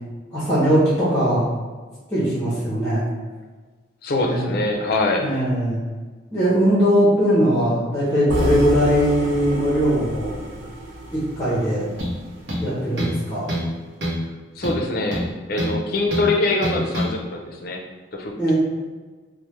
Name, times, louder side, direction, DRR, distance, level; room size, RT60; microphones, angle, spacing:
voice 1, 0.3-1.5 2.1-3.1 4.2-4.5 5.2-5.8 6.3-10.3 11.1-11.9 12.6-13.5 18.4-18.5, equal, 15° left, -8 dB, 0.7 m, -20 dB
voice 2, 4.0-5.3 14.6-17.8 18.1-18.5, left 2 dB, 50° left, 1 dB, 0.4 m, -24 dB
sound 1, 8.3-12.4, right 1 dB, 90° right, 0.5 m, -29 dB
sound 2, 12.0-12.2 12.5-13.2 13.5-13.7 14.0-14.2 14.6-15.8 16.1-16.3 16.6-17.1, equal, 65° right, 0.8 m, -25 dB
3.2 x 2.1 x 3.0 m, 1.4 s
head